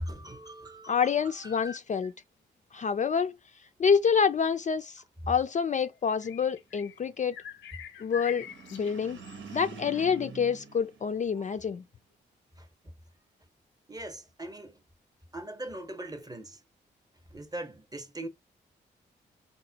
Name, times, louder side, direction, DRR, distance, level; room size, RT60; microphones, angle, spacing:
voice 1, 0.0-1.8 12.6-12.7 13.9-14.8 15.3-16.6 17.3-18.3, right 1 dB, 20° right, 0.8 m, -40 dB
voice 2, 0.9-2.1 2.7-3.3 3.8-4.9 5.3-7.3 8.0-8.5 8.7-9.2 9.5-11.8, left 6 dB, 40° left, 0.4 m, -27 dB
sound 1, 5.8-7.0 7.3-9.6, left 9 dB, 85° left, 0.6 m, -45 dB
sound 2, 8.2-11.7, right 5 dB, 80° right, 0.9 m, -46 dB
4.0 x 2.1 x 2.7 m
supercardioid pair, 55°, 19 cm